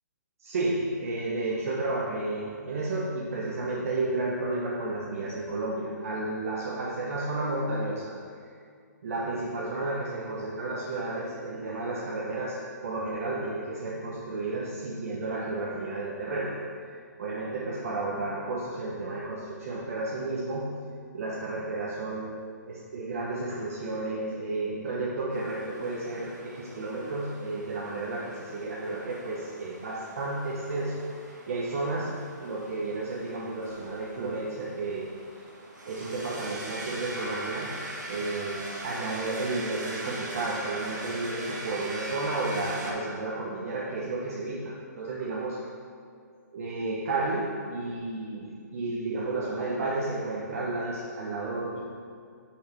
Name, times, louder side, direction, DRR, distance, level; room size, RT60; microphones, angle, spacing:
voice 1, 0.4-8.2 9.0-16.7 17.2-35.2 35.8-45.6 46.5-51.8, right 2 dB, 50° right, -5 dB, 1.1 m, -32 dB
sound 1, 25.3-42.9, right 1 dB, 90° right, 1.8 m, -41 dB
6.5 x 5.8 x 4.6 m, 2.2 s
hypercardioid pair, 155°, 10 cm